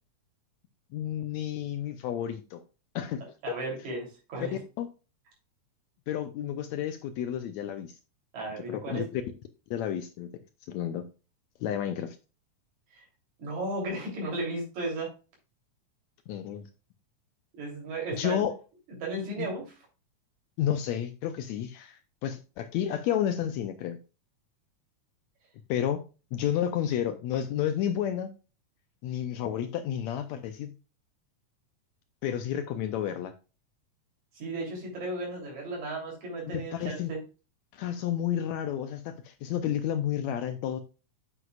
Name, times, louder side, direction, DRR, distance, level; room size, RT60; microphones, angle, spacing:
voice 1, 0.9-2.6 3.0-3.2 3.5-3.6 4.8-4.9 6.1-7.9 8.7-9.2 9.7-10.3 10.7-11.0 11.6-12.2 16.3-16.7 18.2-18.5 19.4-19.5 20.6-24.0 25.7-26.0 26.3-28.3 29.0-30.7 32.2-33.3 36.5-37.1 37.7-40.8, left 10 dB, 75° left, 9 dB, 1.7 m, -31 dB
voice 2, 3.4-4.6 8.3-9.0 12.9-13.0 13.4-15.1 17.5-18.4 19.0-19.7 34.3-37.2, right 2 dB, 60° right, -1 dB, 4.5 m, -35 dB
7.9 x 7.7 x 2.4 m, 0.32 s
omnidirectional pair, 3.7 m